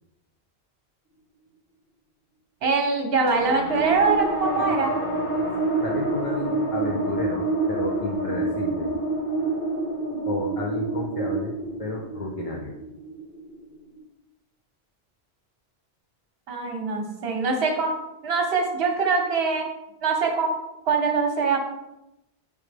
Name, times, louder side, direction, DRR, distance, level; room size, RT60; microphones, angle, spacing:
voice 1, 2.6-5.0 16.5-17.9 18.2-19.7 20.0-20.5 20.9-21.6, right 4 dB, 70° right, 2 dB, 1.1 m, -23 dB
sound 1, 3.3-13.9, right 2 dB, 55° left, 1.8 m, -28 dB
voice 2, 5.8-8.9 10.2-11.5 11.8-12.7, left 1 dB, 35° left, -2 dB, 0.7 m, -31 dB
6.2 x 5.1 x 3.3 m, 0.90 s
omnidirectional pair, 1.1 m